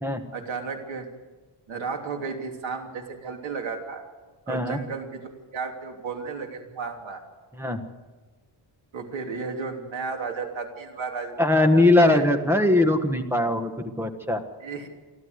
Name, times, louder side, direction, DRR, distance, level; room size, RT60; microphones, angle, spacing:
voice 1, 0.3-1.1 1.7-4.0 4.5-7.2 8.9-12.2 12.6-12.9 14.6-14.9, right 5 dB, 85° right, 3 dB, 3.2 m, -33 dB
voice 2, 4.5-4.8 7.6-7.8 11.4-14.4, left 2 dB, 5° right, 6 dB, 1.4 m, -21 dB
28.5 x 12.0 x 8.1 m, 1.3 s
wide cardioid pair, 170°, 45 cm